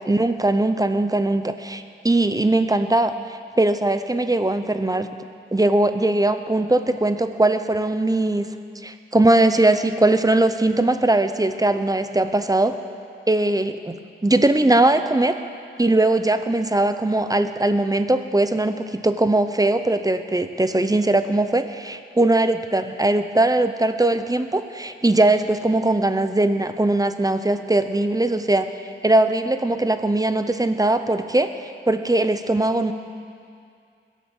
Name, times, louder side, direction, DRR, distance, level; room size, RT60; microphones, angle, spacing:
voice 1, 0.0-3.1 3.6-5.1 5.5-8.5 8.8-12.8 13.3-13.9 14.2-15.4 15.8-28.7 29.0-31.5 31.9-32.9, right 2 dB, 15° right, 9 dB, 0.7 m, -20 dB
22.0 x 8.5 x 7.1 m, 2.3 s
wide cardioid pair, 100°, 21 cm